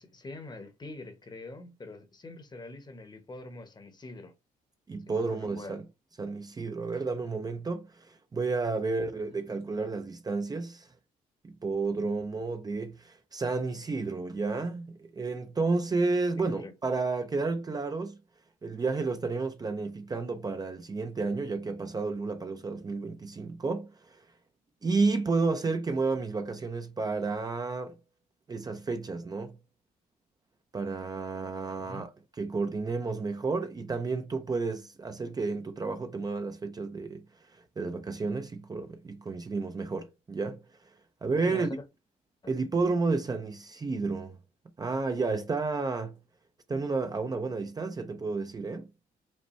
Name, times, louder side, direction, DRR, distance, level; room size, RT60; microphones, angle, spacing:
voice 1, 0.0-4.3 5.1-5.8 8.8-9.9 16.4-16.7 31.8-32.0 41.4-41.8, left 2 dB, 25° left, 1.0 m, -45 dB
voice 2, 4.9-5.8 6.2-10.9 11.4-18.2 18.6-24.2 24.8-27.9 28.5-29.5 30.7-32.1 32.4-37.2 37.8-40.6 41.2-41.7 42.5-44.4 44.8-46.2 46.7-48.9, right 3 dB, 25° right, 0.5 m, -31 dB
5.3 x 2.2 x 3.1 m
cardioid pair, 90°, 16 cm